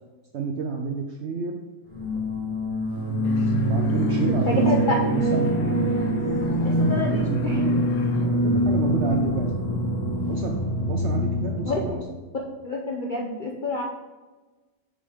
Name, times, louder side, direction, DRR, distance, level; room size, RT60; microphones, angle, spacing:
voice 1, 0.3-1.6 3.2-5.0 5.3-5.5 7.0-7.8 8.2-9.5 10.3-10.6 10.9-12.0, right 5 dB, 65° right, 2 dB, 0.7 m, -30 dB
sound 1, 1.9-11.9, equal, 30° left, 2.7 m, -24 dB
sound 2, 3.2-8.3, left 5 dB, 85° left, 1.3 m, -39 dB
voice 2, 4.3-5.0 6.6-7.6 11.7-12.0 12.6-13.8, left 2 dB, 55° left, -2 dB, 0.5 m, -28 dB
6.4 x 6.2 x 3.6 m, 1.2 s
omnidirectional pair, 1.7 m